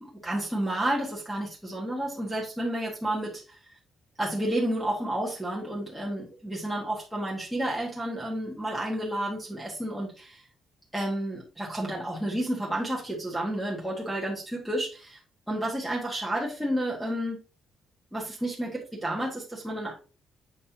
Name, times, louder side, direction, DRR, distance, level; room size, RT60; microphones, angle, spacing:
voice 1, 0.0-3.6 4.2-10.4 10.9-15.2 15.5-17.4 18.1-19.9, right 1 dB, ahead, -5 dB, 1.4 m, -31 dB
7.4 x 5.3 x 2.7 m, 0.34 s
cardioid pair, 170°, 0 cm